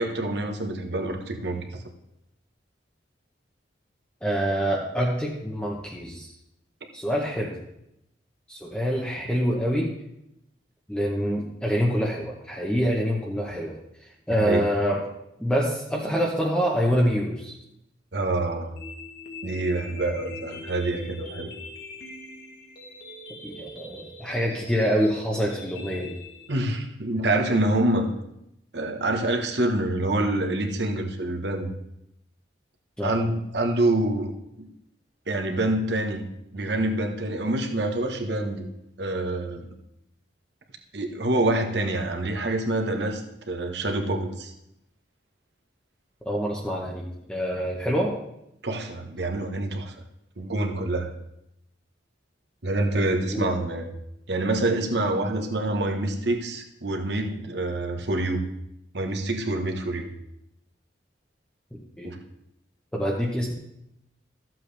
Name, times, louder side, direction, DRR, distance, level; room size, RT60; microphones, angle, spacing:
voice 1, 0.0-1.8 14.4-14.6 18.1-18.8 19.4-21.5 26.5-28.1 28.7-31.7 33.0-34.7 35.3-36.2 36.5-38.7 39.0-39.7 40.9-43.2 43.5-44.5 48.6-49.9 50.4-51.1 52.6-53.9 54.3-58.4 58.9-60.1 62.0-62.2, right 2 dB, 65° right, 3 dB, 1.3 m, -26 dB
voice 2, 4.2-6.3 6.9-7.5 8.5-9.9 10.9-15.0 15.4-17.5 23.4-26.1 33.0-33.1 46.2-48.1 53.2-53.5 62.0-62.2 62.9-63.5, equal, 5° left, -3 dB, 1.0 m, -26 dB
sound 1, 18.8-26.8, left 2 dB, 55° left, 1.9 m, -42 dB
14.0 x 7.7 x 3.4 m, 0.83 s
head